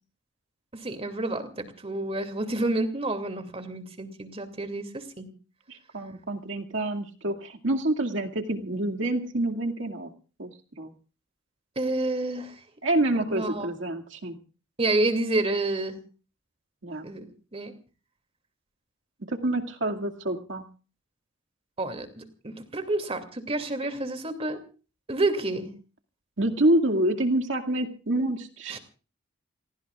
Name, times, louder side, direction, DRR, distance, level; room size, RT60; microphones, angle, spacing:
voice 1, 0.7-5.3 11.8-12.6 13.3-13.7 14.8-16.0 17.0-17.7 21.8-24.6 25.1-25.7 28.7-28.8, right 2 dB, 30° right, 8 dB, 2.6 m, -29 dB
voice 2, 5.7-10.1 10.4-10.5 10.8-10.9 12.8-14.4 16.8-17.1 19.3-20.7 26.4-28.8, right 1 dB, 70° right, 3 dB, 2.3 m, -27 dB
29.0 x 18.5 x 2.4 m, 0.38 s
head